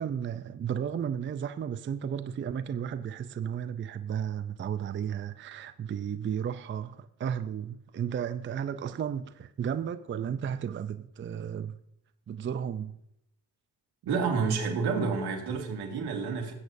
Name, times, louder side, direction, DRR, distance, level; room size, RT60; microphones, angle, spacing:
voice 1, 0.0-11.8 12.3-13.0, right 8 dB, 30° right, 0.4 m, -33 dB
voice 2, 14.0-16.5, right 5 dB, 75° right, 2.0 m, -29 dB
17.0 x 8.1 x 2.6 m
cardioid pair, 75°, 39 cm